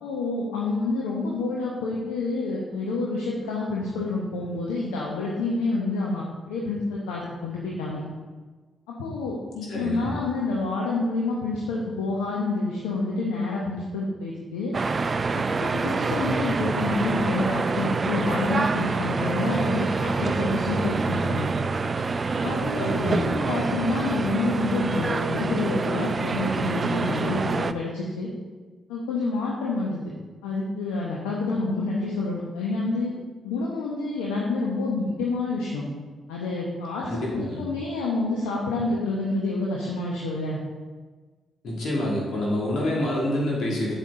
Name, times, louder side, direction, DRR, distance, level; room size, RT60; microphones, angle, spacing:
voice 1, 0.0-8.0 9.0-14.7 15.3-21.5 22.4-28.3 28.9-30.0 30.4-33.1 33.4-35.8 36.3-40.6, left 3 dB, 85° left, -4 dB, 1.0 m, -28 dB
voice 2, 9.7-10.1 22.8-23.4 37.0-37.7 41.6-43.9, left 1 dB, 65° left, -4 dB, 2.6 m, -27 dB
sound 1, 14.7-27.7, right 4 dB, 40° right, 0.4 m, -26 dB
8.0 x 7.3 x 3.8 m, 1.3 s
hypercardioid pair, 40°, 0 cm